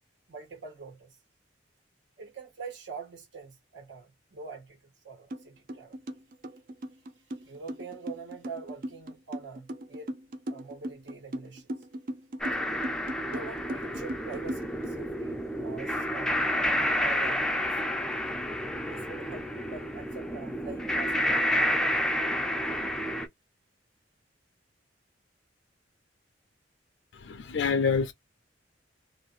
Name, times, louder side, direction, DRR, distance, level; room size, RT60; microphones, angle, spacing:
voice 1, 0.3-1.2 2.2-4.8 5.0-6.0 7.4-10.1 10.5-11.7 13.3-17.7 18.8-22.0, right 5 dB, 75° right, 1.5 m, -44 dB
sound 1, 5.3-5.4 5.7-14.9, right 1 dB, 50° right, 0.5 m, -37 dB
sound 2, 12.4-23.3, equal, 5° left, 0.4 m, -30 dB
voice 2, 27.1-28.1, left 5 dB, 65° left, 0.4 m, -27 dB
2.9 x 2.6 x 2.4 m
head